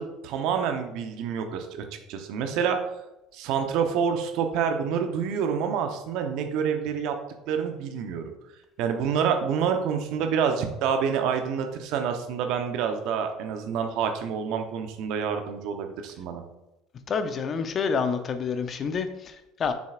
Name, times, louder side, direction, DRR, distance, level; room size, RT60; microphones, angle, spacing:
voice 1, 0.0-2.8 3.3-7.2 7.5-8.2 8.8-16.4, right 7 dB, 65° right, 6 dB, 0.9 m, -27 dB
voice 2, 17.1-19.7, left 5 dB, 40° left, 9 dB, 0.7 m, -28 dB
7.0 x 6.3 x 2.5 m, 0.94 s
hypercardioid pair, 65°, 0 cm